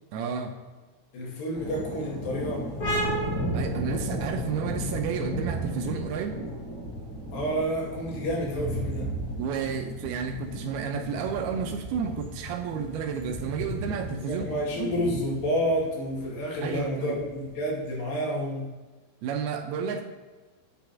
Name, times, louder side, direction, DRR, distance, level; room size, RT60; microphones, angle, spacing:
voice 1, 0.1-0.5 3.5-6.4 9.4-14.4 14.8-14.9 16.6-17.2 19.2-20.0, right 6 dB, 80° right, 5 dB, 2.5 m, -31 dB
voice 2, 1.1-2.7 7.3-9.1 14.2-18.7, equal, 75° left, -3 dB, 4.3 m, -29 dB
sound 1, 1.5-17.6, equal, 5° left, 1.9 m, -36 dB
sound 2, 2.8-10.1, right 1 dB, 35° left, 1.4 m, -35 dB
9.3 x 5.1 x 5.9 m, 1.3 s
omnidirectional pair, 4.8 m